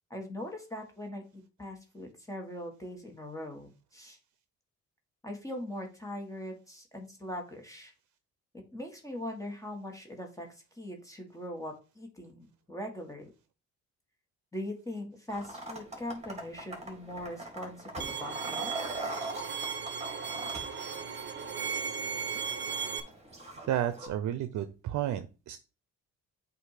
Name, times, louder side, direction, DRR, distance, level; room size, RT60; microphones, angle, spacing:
voice 1, 0.1-4.2 5.2-7.9 8.5-13.3 14.5-18.7, left 1 dB, 10° left, 2 dB, 1.6 m, -41 dB
sound 1, 15.3-24.1, right 1 dB, 20° right, 2.1 m, -42 dB
Bowed string instrument, 18.0-23.0, right 6 dB, 40° right, 0.9 m, -36 dB
voice 2, 23.7-25.6, right 11 dB, 75° right, 11 dB, 0.6 m, -32 dB
8.0 x 2.7 x 4.9 m, 0.32 s
cardioid pair, 90°, 30 cm